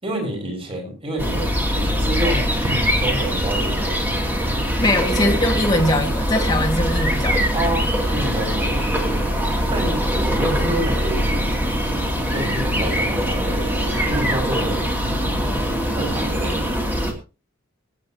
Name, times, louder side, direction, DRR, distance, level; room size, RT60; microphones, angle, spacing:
voice 1, 0.0-2.5 3.0-4.0 5.2-5.4 7.5-8.7 9.7-11.6 12.3-14.9 15.8-16.7, right 1 dB, 30° right, 5.6 m, -28 dB
sound 1, 1.2-17.1, equal, 10° right, 2.7 m, -22 dB
voice 2, 4.8-7.6, left 1 dB, 20° left, 1.9 m, -21 dB
23.5 x 9.5 x 2.9 m
head